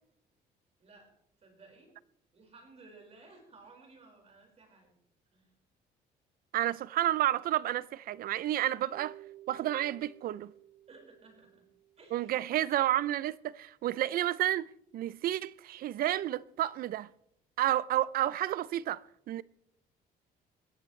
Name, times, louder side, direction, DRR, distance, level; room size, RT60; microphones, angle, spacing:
voice 1, 0.8-1.1 1.4-1.9 2.3-4.9 5.3-5.5 10.9-11.7 12.0-12.3, right 3 dB, 40° right, 5.1 m, -56 dB
voice 2, 6.5-9.1 9.5-10.5 12.1-14.7 14.9-17.1 17.6-19.0 19.3-19.4, right 13 dB, 60° right, 0.5 m, -30 dB
sound 1, 8.9-12.7, right 13 dB, 80° right, 7.6 m, -55 dB
20.5 x 14.5 x 3.2 m
cardioid pair, 110°, 17 cm